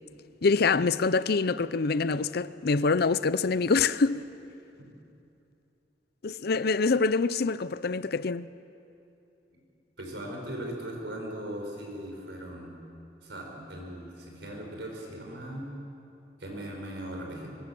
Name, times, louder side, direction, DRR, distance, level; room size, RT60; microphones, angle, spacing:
voice 1, 0.4-4.3 6.2-8.5, left 4 dB, 60° left, 0.6 m, -25 dB
voice 2, 10.0-12.7 13.2-15.7 16.4-17.5, right 1 dB, 70° right, 5.9 m, -39 dB
24.5 x 22.5 x 7.8 m
head